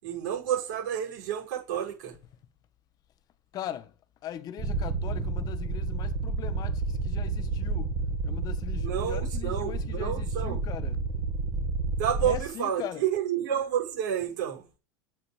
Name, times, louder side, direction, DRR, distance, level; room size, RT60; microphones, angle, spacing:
voice 1, 0.0-2.1 8.7-10.6 12.0-14.6, right 9 dB, 70° right, 6.3 m, -30 dB
voice 2, 3.5-3.9 4.2-7.9 8.2-11.0 12.2-13.0, left 11 dB, 40° left, 1.5 m, -40 dB
sound 1, 4.6-12.4, right 3 dB, 35° right, 2.3 m, -30 dB
8.8 x 8.4 x 7.4 m
supercardioid pair, 115°, 10 cm